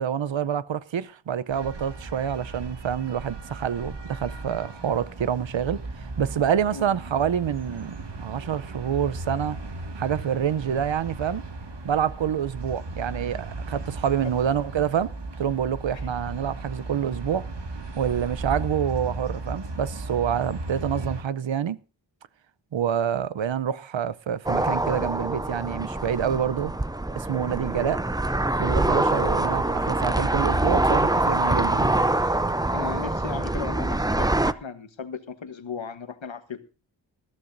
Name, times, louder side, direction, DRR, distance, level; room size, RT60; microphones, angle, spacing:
voice 1, 0.0-5.8 6.2-7.9 8.2-9.6 10.0-11.4 11.8-17.5 18.0-21.8 22.7-26.7 27.1-28.0 28.6-31.9, right 8 dB, 80° right, 0.7 m, -27 dB
sound 1, 1.5-21.2, right 2 dB, 65° right, 2.0 m, -36 dB
sound 2, 24.5-34.5, right 1 dB, 10° right, 0.5 m, -24 dB
voice 2, 32.7-36.6, left 5 dB, 85° left, 1.4 m, -36 dB
20.5 x 14.0 x 2.7 m
wide cardioid pair, 90°, 45 cm